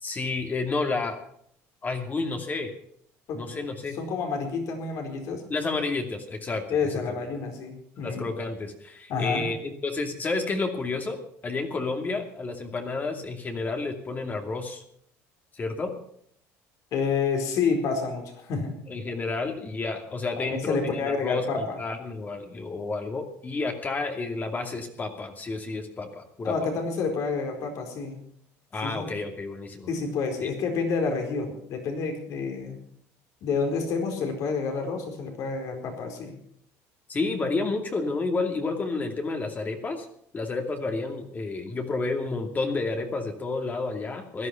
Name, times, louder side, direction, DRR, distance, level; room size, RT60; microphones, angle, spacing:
voice 1, 0.0-1.2 1.8-2.7 3.3-4.0 5.5-6.6 8.0-14.8 15.6-15.9 18.9-26.7 28.7-29.9 30.4-30.5 37.1-40.1 40.3-44.5, left 3 dB, 30° left, 4 dB, 2.5 m, -30 dB
voice 2, 3.3-3.7 3.9-5.4 6.7-8.3 9.1-9.4 16.9-18.8 20.3-21.8 26.4-28.2 28.8-29.1 29.9-32.8 33.4-36.4, left 5 dB, 65° left, 4 dB, 4.5 m, -29 dB
16.5 x 11.5 x 5.9 m, 0.66 s
supercardioid pair, 100°, 6 cm